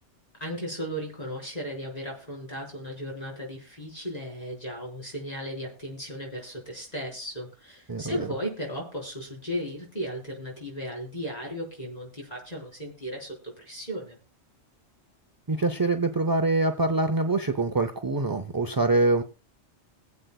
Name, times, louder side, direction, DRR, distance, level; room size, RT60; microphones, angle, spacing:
voice 1, 0.4-14.2, equal, 35° left, -2 dB, 4.5 m, -36 dB
voice 2, 7.9-8.3 15.5-19.2, right 2 dB, 30° right, 7 dB, 0.4 m, -24 dB
22.5 x 8.0 x 2.3 m, 0.32 s
omnidirectional pair, 1.2 m